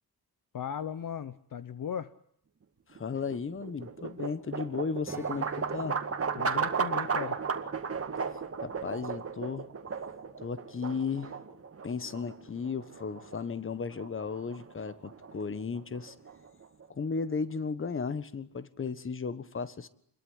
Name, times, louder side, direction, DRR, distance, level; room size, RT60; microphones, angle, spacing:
voice 1, 0.5-2.1 6.4-7.4, left 8 dB, 55° left, 14 dB, 1.1 m, -37 dB
voice 2, 2.9-6.0 7.9-8.0 8.3-9.7 10.4-11.3 11.8-16.1 16.9-19.9, left 5 dB, 30° left, 15 dB, 1.4 m, -35 dB
sound 1, 2.9-17.0, right 5 dB, 35° right, 2.0 m, -35 dB
Strum, 5.0-10.5, right 1 dB, 5° right, 2.1 m, -52 dB
sound 2, 5.3-11.6, left 1 dB, 15° left, 5.5 m, -59 dB
28.0 x 22.0 x 9.8 m, 0.69 s
wide cardioid pair, 165°, 39 cm